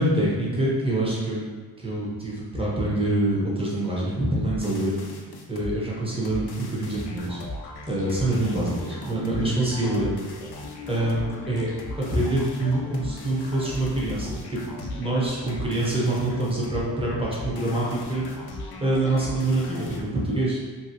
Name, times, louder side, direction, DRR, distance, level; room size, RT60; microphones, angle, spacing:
voice 1, 0.0-1.4 1.8-5.0 5.5-7.4 7.9-10.1 10.5-10.6 10.9-20.6, right 1 dB, 15° right, -6 dB, 0.9 m, -26 dB
sound 1, 4.5-5.8 6.2-20.0, left 2 dB, 65° left, 0.5 m, -38 dB
2.8 x 2.7 x 2.7 m, 1.4 s
wide cardioid pair, 70°, 43 cm